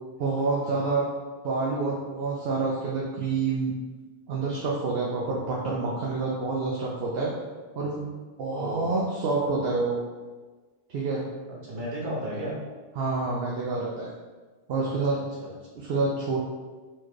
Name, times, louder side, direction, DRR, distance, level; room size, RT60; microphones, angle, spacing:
voice 1, 0.2-1.1 1.4-3.7 4.3-7.3 7.8-8.1 8.4-10.0 10.9-11.2 13.0-14.1 14.7-15.2 15.8-16.4, right 3 dB, 70° right, -4 dB, 0.9 m, -27 dB
voice 2, 8.6-9.0 11.5-12.5 14.8-15.5, right 1 dB, 55° right, -5 dB, 1.3 m, -35 dB
4.4 x 2.4 x 4.6 m, 1.3 s
omnidirectional pair, 1.1 m